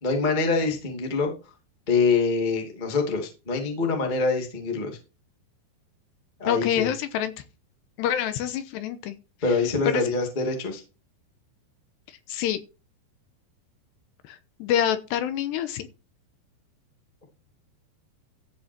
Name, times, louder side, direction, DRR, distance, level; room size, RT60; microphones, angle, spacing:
voice 1, 0.0-1.3 1.9-5.0 6.4-6.9 9.4-10.8, left 4 dB, 15° left, 1.7 m, -25 dB
voice 2, 6.5-7.3 8.0-9.2 9.5-9.6 9.9-10.0 12.1-12.6 14.2-15.9, left 10 dB, 75° left, 3.0 m, -27 dB
14.5 x 6.2 x 4.5 m
omnidirectional pair, 5.1 m